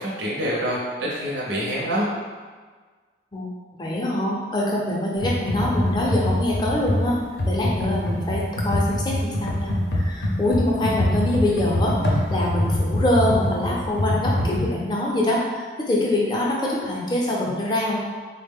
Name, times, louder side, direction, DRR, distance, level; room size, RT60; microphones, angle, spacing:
voice 1, 0.0-2.1, equal, 85° right, -4 dB, 0.6 m, -26 dB
voice 2, 3.8-7.2 7.4-18.0, left 1 dB, 25° left, -3 dB, 0.5 m, -24 dB
Computer keyboard, 5.2-14.7, left 1 dB, 70° left, 0.6 m, -24 dB
3.6 x 2.1 x 3.5 m, 1.5 s
head